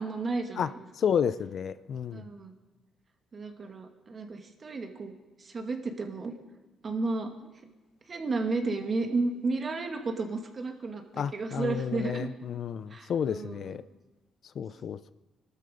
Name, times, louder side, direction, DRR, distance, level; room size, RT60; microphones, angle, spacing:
voice 1, 0.0-0.8 2.1-2.5 3.3-5.1 5.4-6.3 6.8-7.3 8.1-12.3 12.9-13.8, right 3 dB, 40° right, 4 dB, 2.1 m, -33 dB
voice 2, 1.0-2.3 11.2-13.8 14.6-15.1, left 8 dB, 60° left, 14 dB, 0.6 m, -31 dB
22.5 x 12.5 x 5.1 m, 1.1 s
cardioid pair, 90°, 0 cm